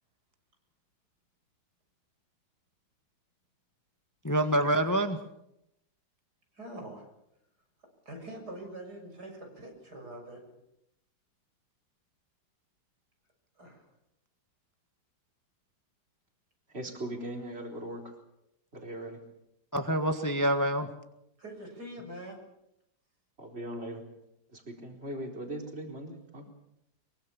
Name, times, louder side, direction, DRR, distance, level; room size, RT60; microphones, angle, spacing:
voice 1, 4.2-5.2 19.7-20.9, right 1 dB, 10° left, 7 dB, 1.5 m, -26 dB
voice 2, 6.5-7.1 8.1-10.4 13.6-13.8 21.4-22.4, right 1 dB, 75° right, 3 dB, 7.5 m, -44 dB
voice 3, 16.7-18.0 18.7-19.2 23.4-24.0 24.5-26.5, right 1 dB, 40° right, 2 dB, 4.5 m, -39 dB
24.0 x 23.5 x 7.1 m, 0.81 s
omnidirectional pair, 1.7 m